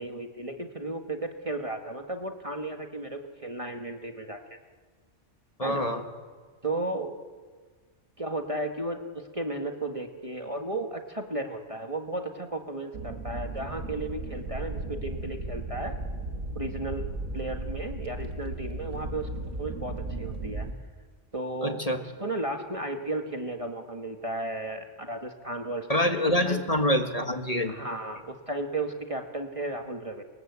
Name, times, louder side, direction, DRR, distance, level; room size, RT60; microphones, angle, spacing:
voice 1, 0.0-4.4 5.6-5.9 6.6-7.1 8.2-16.0 16.5-19.3 19.6-20.7 21.3-26.6 27.7-30.2, right 2 dB, 25° right, 4 dB, 1.6 m, -34 dB
voice 2, 5.6-6.0 21.6-22.0 25.9-27.7, left 1 dB, 30° left, 5 dB, 1.8 m, -26 dB
sound 1, 12.9-20.7, right 2 dB, 70° right, 2.3 m, -35 dB
28.0 x 21.0 x 8.2 m, 1.5 s
omnidirectional pair, 1.3 m